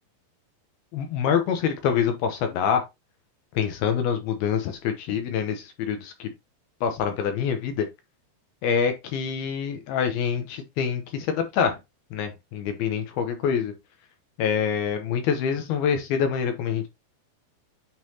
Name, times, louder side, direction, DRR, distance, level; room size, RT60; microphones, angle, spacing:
voice 1, 0.9-2.8 3.5-6.3 6.8-7.9 8.6-11.8 12.1-13.7 14.4-16.9, left 7 dB, 75° left, 2.6 m, -26 dB
8.9 x 3.9 x 2.8 m
omnidirectional pair, 4.8 m